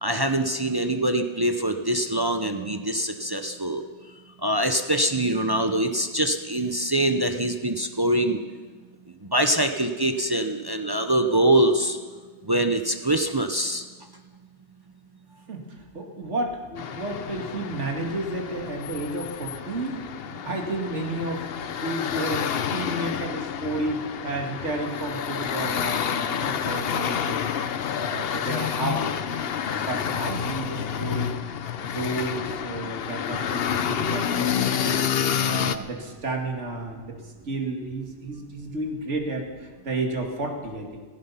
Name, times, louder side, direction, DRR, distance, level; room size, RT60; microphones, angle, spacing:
voice 1, 0.0-3.8 4.4-8.4 9.3-12.0 12.5-13.8, right 1 dB, 25° right, 6 dB, 0.7 m, -24 dB
voice 2, 15.3-20.0 20.4-21.5 21.8-27.6 27.9-29.1 29.7-31.5 31.8-35.0 35.4-41.0, right 2 dB, 90° right, 2 dB, 2.4 m, -32 dB
sound 1, 16.8-35.8, left 8 dB, 60° left, 0.9 m, -29 dB
16.0 x 15.5 x 5.7 m, 1.4 s
omnidirectional pair, 1.2 m